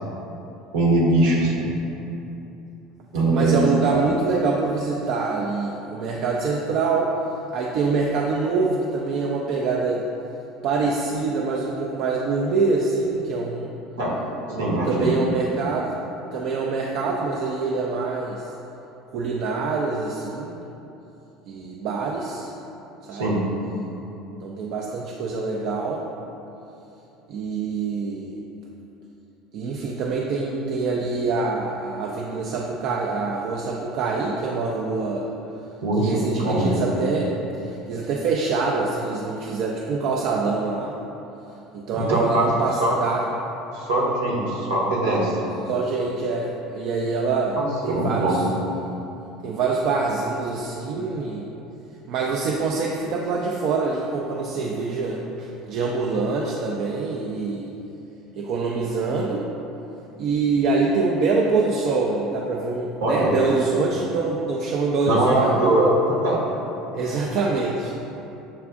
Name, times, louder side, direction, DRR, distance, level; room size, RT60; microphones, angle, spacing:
voice 1, 0.7-1.7 3.1-3.6 14.0-14.1 14.6-15.2 23.1-23.4 35.8-36.7 41.9-42.5 42.8-42.9 43.7-45.4 47.5-48.4 63.0-63.3 65.1-66.4, right 1 dB, 75° right, -5 dB, 0.9 m, -21 dB
voice 2, 3.3-7.1 7.5-10.1 10.6-13.7 14.5-15.9 16.3-18.5 19.1-20.6 21.5-22.5 23.0-23.4 24.4-26.0 27.3-28.4 29.5-35.3 36.0-37.3 37.6-40.9 41.7-43.2 45.7-48.5 49.4-51.5 52.1-57.7 58.4-59.5 60.2-65.9 66.9-67.9, right 4 dB, 60° right, -2 dB, 0.3 m, -25 dB
7.0 x 2.4 x 2.4 m, 3.0 s
hypercardioid pair, 70°, 0 cm